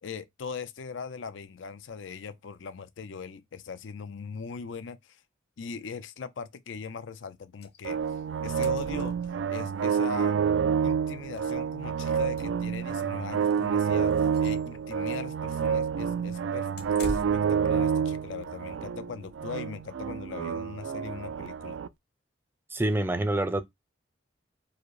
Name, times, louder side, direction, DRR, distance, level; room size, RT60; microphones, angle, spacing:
voice 1, 0.0-5.2 5.6-8.0 8.4-9.1 9.5-10.4 10.8-16.7 17.0-21.8, left 5 dB, 80° left, 0.5 m, -40 dB
sound 1, 7.6-7.8 8.1-8.2 8.4-9.6 10.9-11.0 11.3-11.5 12.0-12.9 13.4-13.6 14.1-14.6 16.8-17.6, left 1 dB, 55° left, 1.0 m, -41 dB
sound 2, 7.8-21.9, right 7 dB, 80° right, 0.3 m, -28 dB
voice 2, 22.7-23.6, right 1 dB, 10° right, 0.4 m, -26 dB
4.8 x 2.0 x 4.6 m
head